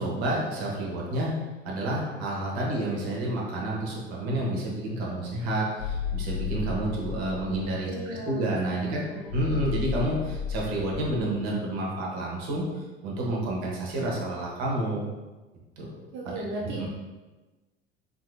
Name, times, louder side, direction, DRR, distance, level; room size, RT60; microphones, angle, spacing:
voice 1, 0.0-1.3 1.6-9.0 9.3-12.6 13.0-15.1 15.8-16.0 16.4-16.5 16.7-16.9, right 1 dB, 50° right, -3 dB, 1.0 m, -29 dB
sound 1, 5.8-7.6 9.3-11.2, left 6 dB, 55° left, 0.8 m, -33 dB
voice 2, 6.9-7.6 7.8-8.6 8.9-9.3 16.1-16.9, right 1 dB, 35° right, -4 dB, 0.6 m, -38 dB
3.6 x 2.8 x 2.3 m, 1.2 s
figure-of-eight pair, 60°, 33 cm